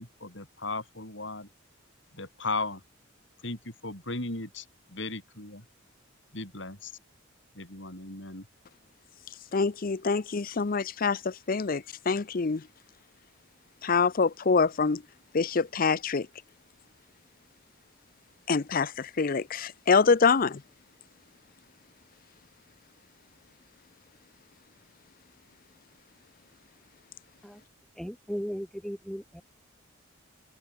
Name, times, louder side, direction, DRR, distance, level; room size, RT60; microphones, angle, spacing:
voice 1, 0.0-1.5 2.1-2.8 3.4-5.6 6.3-6.9 7.6-8.5, left 3 dB, 60° left, 7.2 m, -36 dB
voice 2, 9.5-11.2 11.5-12.6 13.8-15.0 15.3-16.2 18.5-18.9 19.2-20.6, left 4 dB, 45° left, 0.6 m, -25 dB
voice 3, 28.0-29.4, equal, ahead, 3.8 m, -36 dB
head